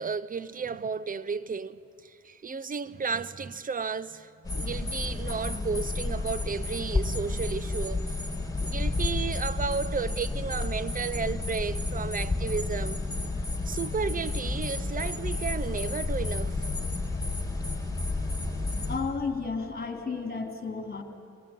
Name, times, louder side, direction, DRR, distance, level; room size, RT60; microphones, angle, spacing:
voice 1, 0.0-8.1 8.6-13.0 13.6-16.7, right 5 dB, 30° right, 0.7 m, -33 dB
sound 1, 4.4-19.0, left 2 dB, 10° left, 5.2 m, -31 dB
voice 2, 18.9-21.0, left 4 dB, 30° left, 3.1 m, -32 dB
23.0 x 16.0 x 9.2 m
cardioid pair, 90°, 30 cm